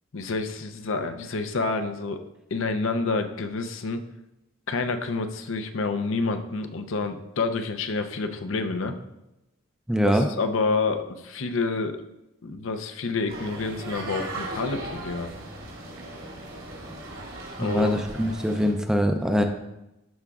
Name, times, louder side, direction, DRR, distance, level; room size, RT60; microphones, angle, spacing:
voice 1, 0.1-2.2 2.5-4.0 4.7-8.9 10.0-12.0 12.4-15.3 17.6-17.9, left 3 dB, 70° left, 7 dB, 0.6 m, -28 dB
voice 2, 9.9-10.3 17.6-19.4, equal, 5° right, 5 dB, 0.4 m, -23 dB
sound 1, 13.3-18.7, right 1 dB, 75° right, 2.7 m, -37 dB
12.5 x 5.0 x 2.4 m, 0.92 s
head